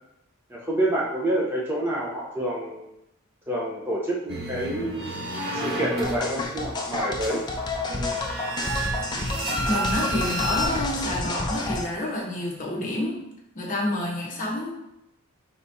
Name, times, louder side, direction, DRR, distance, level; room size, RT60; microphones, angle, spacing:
voice 1, 0.5-2.9 3.5-5.3 5.5-7.4, right 1 dB, 10° right, -5 dB, 0.7 m, -28 dB
sound 1, 4.3-10.7, right 1 dB, 50° right, 1.0 m, -31 dB
sound 2, 6.0-11.8, left 2 dB, 20° left, 0.4 m, -30 dB
voice 2, 9.7-13.2 13.5-15.0, left 1 dB, 35° left, -3 dB, 0.9 m, -28 dB
4.9 x 3.4 x 2.7 m, 0.83 s
head